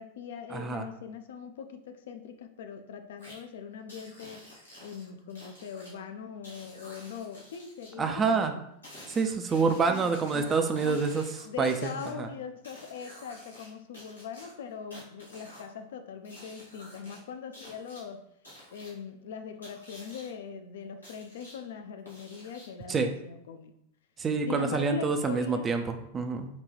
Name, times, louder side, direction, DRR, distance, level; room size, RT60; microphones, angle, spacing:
voice 1, 0.0-4.4 4.8-8.7 9.6-18.2 18.7-23.7 24.5-25.7, left 6 dB, 60° left, 7 dB, 0.3 m, -41 dB
voice 2, 0.5-0.8 8.0-8.5 9.1-11.2 11.6-11.9 12.2-12.3 22.9-23.1 24.2-26.5, right 4 dB, 20° right, 6 dB, 0.3 m, -27 dB
sound 1, 3.2-3.4 3.9-5.9 6.4-7.9 8.8-12.1 12.6-13.7 13.9-15.7 16.2-17.2 17.5-18.0 18.4-18.9 19.6-20.3 21.0-21.6 22.1-22.8, equal, 80° left, 1.3 m, -50 dB
3.9 x 2.2 x 3.1 m, 0.75 s
figure-of-eight pair, 90°, 0 cm